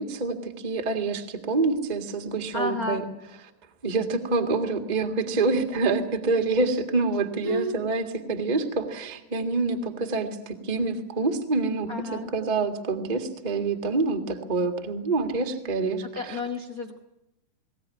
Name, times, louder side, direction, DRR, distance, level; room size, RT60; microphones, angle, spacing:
voice 1, 0.0-3.0 3.8-16.4, right 3 dB, 30° right, 6 dB, 0.8 m, -27 dB
voice 2, 2.5-3.0 7.4-7.8 11.9-12.3 16.1-17.0, left 2 dB, 65° left, 3 dB, 0.8 m, -31 dB
20.0 x 18.0 x 9.7 m, 0.86 s
omnidirectional pair, 4.1 m